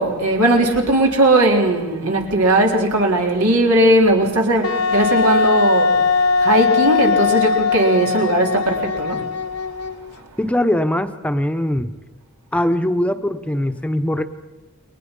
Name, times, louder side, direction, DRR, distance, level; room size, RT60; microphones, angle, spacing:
voice 1, 0.0-9.2, right 1 dB, 85° right, 1 dB, 4.0 m, -18 dB
Wind instrument woodwind instrument, 4.6-10.1, left 4 dB, 90° left, 1.1 m, -19 dB
voice 2, 10.4-11.9 12.5-14.2, left 1 dB, 5° left, 7 dB, 1.0 m, -21 dB
30.0 x 22.5 x 5.5 m, 1.1 s
head